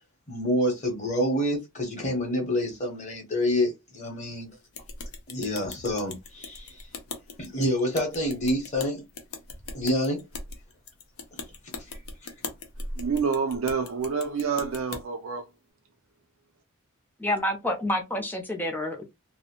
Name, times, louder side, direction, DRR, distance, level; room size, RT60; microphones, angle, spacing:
voice 1, 0.3-4.5 5.3-6.9 7.4-9.0 9.7-10.2 12.2-12.3, equal, 30° left, 0.9 m, -27 dB
sound 1, 4.7-15.0, left 3 dB, 80° left, 0.6 m, -40 dB
voice 2, 13.0-15.4, right 5 dB, 70° right, 0.4 m, -28 dB
voice 3, 17.2-19.0, left 1 dB, 10° left, 0.5 m, -28 dB
2.6 x 2.0 x 2.8 m
head